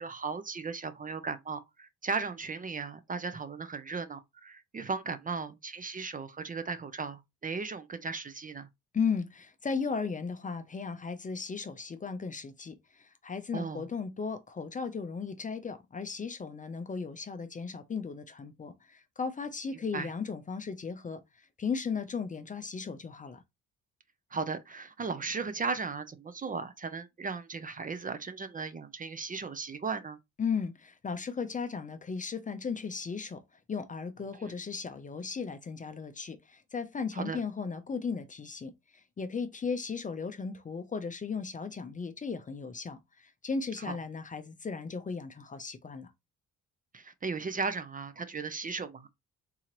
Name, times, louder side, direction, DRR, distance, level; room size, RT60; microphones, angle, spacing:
voice 1, 0.0-8.7 13.5-13.9 19.7-20.1 24.3-30.2 34.4-34.5 37.1-37.4 43.8-44.0 46.9-49.1, right 4 dB, 30° right, 0.5 m, -36 dB
voice 2, 8.9-21.2 21.6-23.4 30.4-33.4 33.7-38.7 39.2-46.1, left 5 dB, 25° left, 0.5 m, -36 dB
3.8 x 2.8 x 2.9 m
cardioid pair, 90°, 30 cm